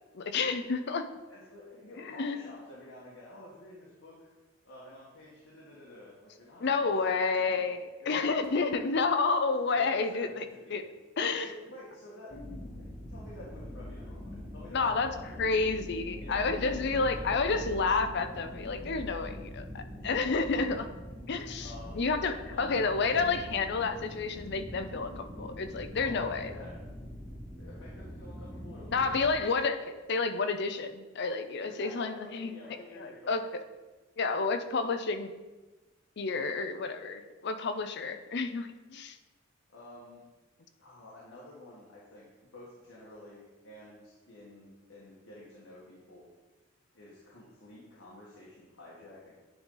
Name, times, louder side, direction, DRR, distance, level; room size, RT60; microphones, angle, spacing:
voice 1, 0.1-1.1 2.0-2.4 6.6-10.8 11.2-11.5 12.3-12.5 14.7-15.1 15.4-20.9 21.3-26.5 28.9-32.5 33.0-33.5 34.2-35.3 36.2-39.2, left 4 dB, 60° left, 9 dB, 0.5 m, -30 dB
voice 2, 1.3-4.3 4.6-7.7 8.0-9.0 9.7-10.4 10.6-10.8 11.3-12.4 12.8-15.5 16.2-17.3 20.4-20.6 21.6-22.1 22.4-22.8 26.0-26.8 27.6-29.2 31.6-33.5 39.7-40.2 40.8-42.3 42.5-46.3 46.9-49.3, left 1 dB, 75° left, -6 dB, 1.6 m, -50 dB
sound 1, 12.3-29.3, left 1 dB, 5° left, 0.7 m, -43 dB
9.7 x 3.9 x 3.9 m, 1.2 s
head